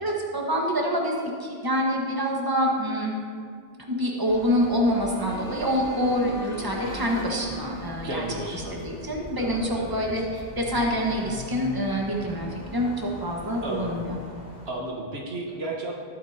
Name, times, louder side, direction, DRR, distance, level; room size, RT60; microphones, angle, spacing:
voice 1, 0.0-3.2 3.9-8.2 8.7-14.2, equal, 20° right, -1 dB, 1.6 m, -26 dB
sound 1, 4.3-14.7, left 1 dB, 45° left, 1.6 m, -40 dB
voice 2, 8.0-8.8 9.3-10.3 13.6-14.0 14.6-15.9, right 2 dB, 80° right, -1 dB, 1.7 m, -33 dB
20.5 x 8.5 x 2.9 m, 2.2 s
omnidirectional pair, 1.0 m